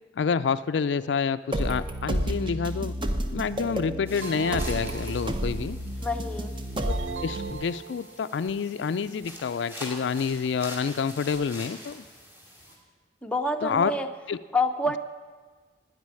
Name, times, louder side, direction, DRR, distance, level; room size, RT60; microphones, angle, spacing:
voice 1, 0.2-3.0 3.3-5.8 7.2-12.1 13.6-13.9 14.3-14.4, left 6 dB, 75° left, 13 dB, 0.4 m, -28 dB
sound 1, 1.5-7.5, equal, 30° right, 0.8 m, -31 dB
sound 2, 4.0-12.8, equal, 10° right, 2.6 m, -45 dB
sound 3, 4.2-5.8 6.8-8.4, right 6 dB, 90° right, 0.5 m, -38 dB
voice 2, 6.0-6.5 13.2-14.1 14.5-15.0, left 2 dB, 5° left, 4 dB, 0.6 m, -27 dB
9.5 x 8.9 x 9.7 m, 1.5 s
head